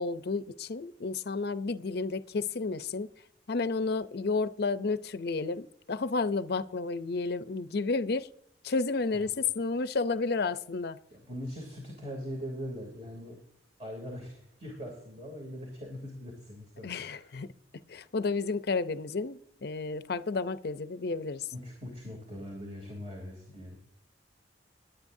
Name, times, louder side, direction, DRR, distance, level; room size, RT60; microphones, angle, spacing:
voice 1, 0.0-3.1 3.5-8.3 8.6-11.0 16.8-17.5 17.9-21.5, left 4 dB, 60° left, 0.6 m, -31 dB
voice 2, 11.1-13.4 13.8-17.3 21.5-23.8, equal, 35° right, 3.0 m, -41 dB
21.5 x 9.0 x 2.7 m
head